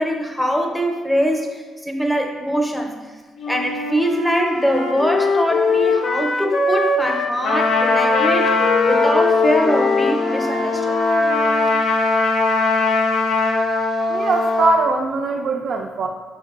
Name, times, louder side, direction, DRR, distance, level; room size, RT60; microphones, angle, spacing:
voice 1, 0.0-3.1 3.5-11.0, equal, 5° left, 1 dB, 0.6 m, -22 dB
Wind instrument woodwind instrument, 3.4-11.7, left 4 dB, 60° left, 0.4 m, -22 dB
Trumpet, 7.4-14.8, left 3 dB, 80° left, 0.7 m, -20 dB
voice 2, 14.1-16.1, right 3 dB, 65° right, 1 dB, 0.3 m, -21 dB
4.6 x 3.7 x 2.4 m, 1.4 s
cardioid pair, 90°, 0 cm